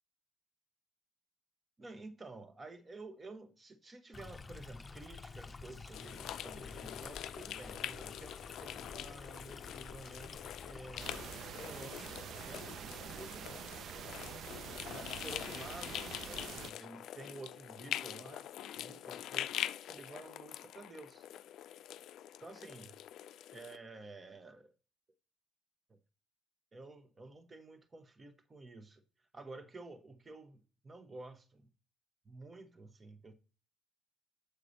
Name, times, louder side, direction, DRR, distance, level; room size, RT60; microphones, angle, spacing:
voice 1, 1.8-11.2 11.6-13.6 14.9-21.3 22.4-22.9 23.5-24.7 25.9-26.0 26.7-29.0 29.3-31.7 32.2-33.3, right 2 dB, 30° right, 1.1 m, -51 dB
Stream, 4.1-11.3, left 4 dB, 25° left, 0.7 m, -50 dB
sound 1, 5.9-23.8, left 12 dB, 80° left, 0.3 m, -44 dB
sound 2, 11.0-16.7, right 9 dB, 70° right, 0.3 m, -46 dB
8.2 x 4.9 x 4.0 m
cardioid pair, 90°, 0 cm